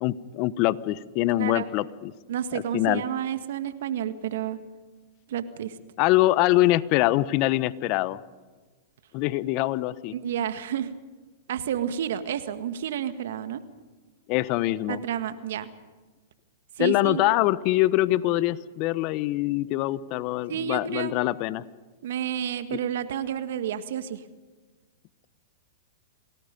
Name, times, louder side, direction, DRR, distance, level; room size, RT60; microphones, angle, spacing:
voice 1, 0.0-2.1 2.7-3.0 6.0-8.2 9.1-10.1 14.3-15.0 16.8-21.6, left 16 dB, 45° left, 16 dB, 1.1 m, -24 dB
voice 2, 1.3-1.7 2.3-4.6 5.3-5.7 10.1-10.9 11.5-13.6 14.9-15.7 16.8-17.2 20.5-21.1 22.0-24.2, right 9 dB, 70° right, 10 dB, 1.7 m, -30 dB
28.5 x 19.5 x 5.3 m, 1.3 s
hypercardioid pair, 115°, 0 cm